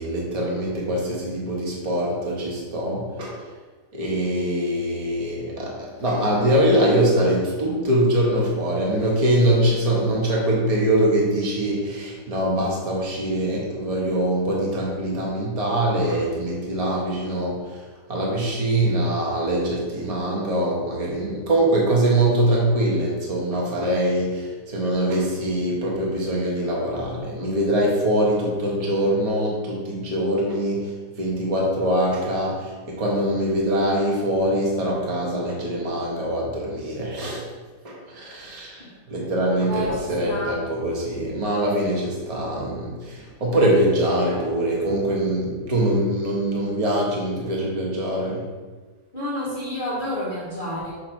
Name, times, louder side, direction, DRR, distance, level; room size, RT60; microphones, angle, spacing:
voice 1, 0.0-3.4 3.9-17.8 18.1-37.4 37.8-48.5, right 1 dB, 25° right, -3 dB, 0.9 m, -23 dB
voice 2, 39.6-40.6 49.1-50.9, equal, 30° left, -7 dB, 1.1 m, -29 dB
6.9 x 3.2 x 4.4 m, 1.3 s
omnidirectional pair, 2.1 m